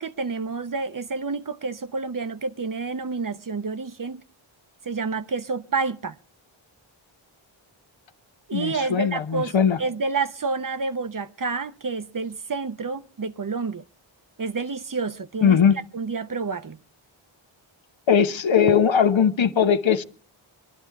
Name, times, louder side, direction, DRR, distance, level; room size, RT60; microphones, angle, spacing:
voice 1, 0.0-4.2 4.8-6.2 8.5-13.8 14.4-15.6 15.9-16.8, right 4 dB, 40° right, 0.8 m, -29 dB
voice 2, 8.5-9.8 15.4-15.8 18.1-20.0, left 7 dB, 65° left, 1.0 m, -19 dB
22.0 x 12.0 x 4.7 m
wide cardioid pair, 85°, 49 cm